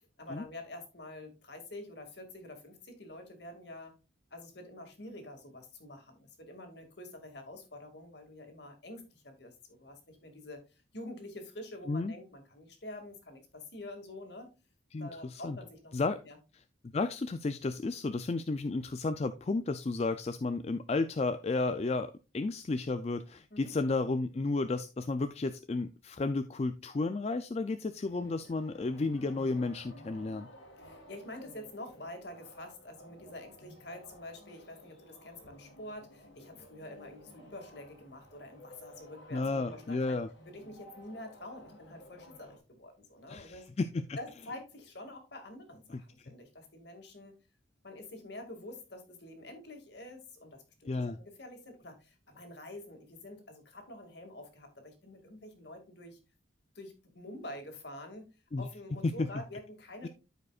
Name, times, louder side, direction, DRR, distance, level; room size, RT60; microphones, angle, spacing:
voice 1, 0.0-4.0 4.3-14.5 15.0-16.4 23.5-23.7 30.8-40.2 40.5-43.7 44.2-47.3 47.8-56.2 56.7-58.3 58.6-60.1, left 1 dB, 60° left, 5 dB, 2.1 m, -47 dB
voice 2, 14.9-15.6 15.9-16.2 16.9-30.5 39.3-40.3 43.3-44.2 45.9-46.3 50.9-51.2 58.5-58.7 59.0-59.1 60.0-60.1, left 3 dB, 35° left, 10 dB, 0.4 m, -33 dB
sound 1, 28.0-42.6, equal, 80° left, 2.3 m, -54 dB
13.5 x 5.1 x 2.4 m, 0.29 s
head